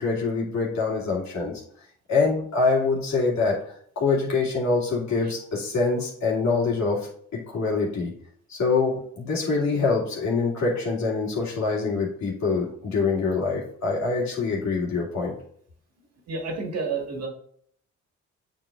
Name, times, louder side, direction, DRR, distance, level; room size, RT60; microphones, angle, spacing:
voice 1, 0.0-1.6 2.1-8.1 8.5-15.3, left 4 dB, 65° left, -4 dB, 2.4 m, -25 dB
voice 2, 16.3-17.3, right 4 dB, 55° right, 1 dB, 1.8 m, -29 dB
8.5 x 4.9 x 2.5 m, 0.62 s
cardioid pair, 90°, 30 cm